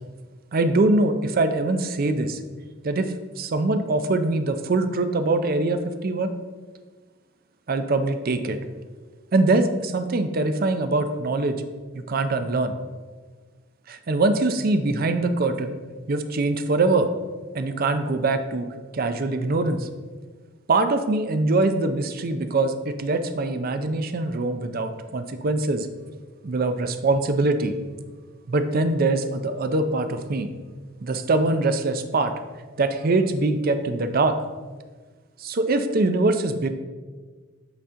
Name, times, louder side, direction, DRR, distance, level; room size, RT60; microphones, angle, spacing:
voice 1, 0.5-2.4 2.8-3.0 3.4-6.3 7.7-8.6 9.3-11.6 11.9-12.7 13.9-15.8 16.1-17.1 17.5-18.7 18.9-19.9 20.7-25.9 26.4-27.7 28.5-30.5 31.0-32.3 32.8-34.3 35.4-36.7, right 2 dB, 50° right, 8 dB, 0.5 m, -23 dB
7.9 x 4.2 x 3.7 m, 1.4 s
head